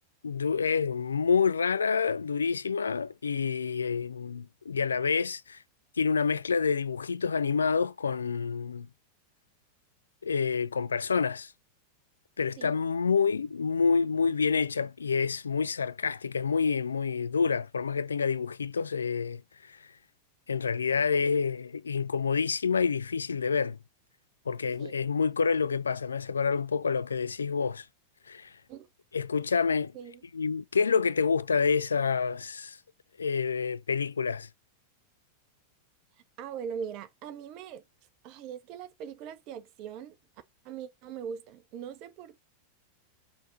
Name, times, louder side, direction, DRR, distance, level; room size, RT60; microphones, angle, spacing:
voice 1, 0.2-5.6 6.0-8.9 10.2-11.5 12.4-19.4 19.7-19.8 20.5-23.8 24.5-27.9 28.3-28.5 29.1-29.9 30.3-32.8 33.2-34.5, left 5 dB, 75° left, 0.3 m, -28 dB
voice 2, 36.4-37.8 38.2-40.1 40.6-42.4, right 7 dB, 40° right, 0.5 m, -41 dB
4.2 x 2.6 x 3.7 m
figure-of-eight pair, 90°, 0 cm